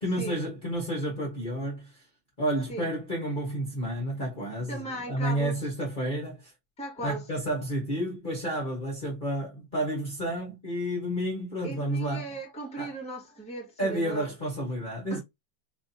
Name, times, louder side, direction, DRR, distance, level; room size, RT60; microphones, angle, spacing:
voice 1, 0.0-2.0 2.4-6.5 7.0-12.3 12.8-12.9 13.8-15.2, right 1 dB, 30° left, 1.1 m, -31 dB
voice 2, 4.7-5.7 6.8-7.2 11.6-14.3 15.1-15.2, right 2 dB, 5° left, 1.2 m, -37 dB
4.7 x 2.8 x 2.7 m
omnidirectional pair, 2.1 m